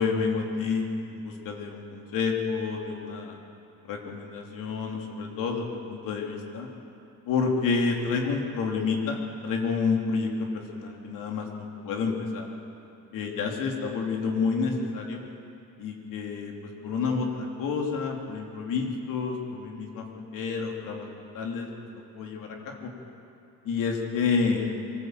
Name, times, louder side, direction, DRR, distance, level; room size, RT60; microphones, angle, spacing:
voice 1, 0.0-3.4 3.8-6.7 7.3-12.5 13.1-15.3 15.8-16.5 16.8-21.7 22.1-22.9 23.6-24.8, left 5 dB, 65° left, 1 dB, 3.2 m, -29 dB
24.0 x 14.0 x 8.0 m, 2.7 s
cardioid pair, 135°, 35 cm